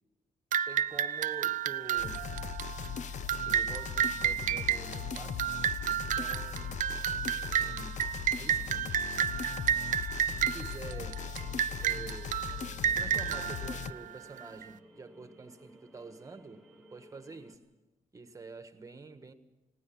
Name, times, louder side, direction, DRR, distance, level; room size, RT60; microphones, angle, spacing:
sound 1, 0.5-14.6, right 10 dB, 75° right, 0.7 m, -32 dB
voice 1, 0.7-2.2 3.4-5.5 5.9-6.7 7.3-8.9 10.1-11.2 11.8-12.4 13.0-17.6 18.1-19.3, right 4 dB, 25° right, 1.5 m, -48 dB
sound 2, 2.0-13.9, left 8 dB, 65° left, 0.6 m, -39 dB
sound 3, 11.1-17.6, right 1 dB, 5° left, 3.1 m, -58 dB
19.5 x 17.5 x 8.6 m
cardioid pair, 135°, 13 cm